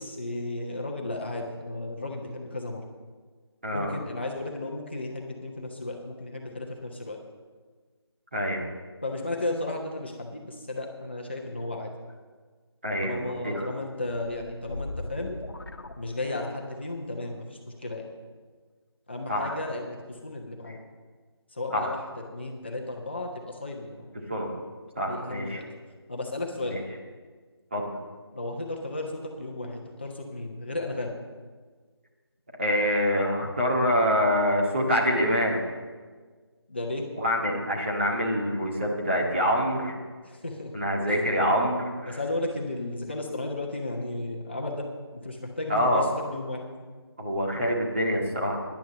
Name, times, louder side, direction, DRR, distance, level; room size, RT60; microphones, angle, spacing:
voice 1, 0.0-2.8 3.7-7.2 9.0-11.9 13.0-15.3 16.0-18.1 19.1-20.8 21.5-22.0 22.3-24.1 25.0-25.7 26.1-26.8 28.3-31.2 36.7-37.0 40.2-40.7 41.1-41.2 42.1-44.8 45.1-46.6, left 2 dB, 25° left, 0 dB, 1.2 m, -34 dB
voice 2, 3.6-4.0 8.3-8.6 12.8-13.7 19.3-19.6 21.7-21.9 24.3-24.5 25.0-25.6 26.6-26.8 27.7-27.9 32.6-35.6 37.2-40.0 40.7-42.2 45.7-46.0 47.2-48.6, equal, 25° right, -3 dB, 1.8 m, -26 dB
sound 1, 14.1-16.7, left 2 dB, 55° left, 1.4 m, -39 dB
11.0 x 10.0 x 6.9 m, 1.5 s
figure-of-eight pair, 180°, 14 cm